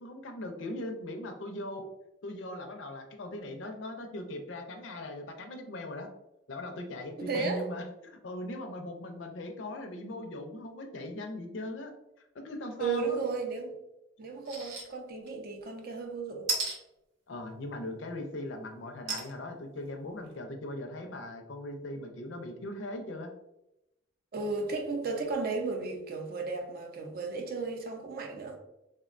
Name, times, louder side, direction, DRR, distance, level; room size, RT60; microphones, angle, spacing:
voice 1, 0.0-1.9 2.2-6.1 6.5-11.9 12.3-13.2 17.3-23.3, left 1 dB, 70° left, 4 dB, 0.5 m, -39 dB
voice 2, 7.2-7.6 12.8-13.7 14.2-16.5 24.3-28.6, right 4 dB, 55° right, 3 dB, 0.5 m, -34 dB
sound 1, 14.4-14.8 15.3-15.4 16.5-16.7 19.1-19.3 19.9-20.0 20.2-20.3, right 3 dB, 75° right, 0.8 m, -32 dB
3.5 x 2.1 x 2.4 m, 0.90 s
head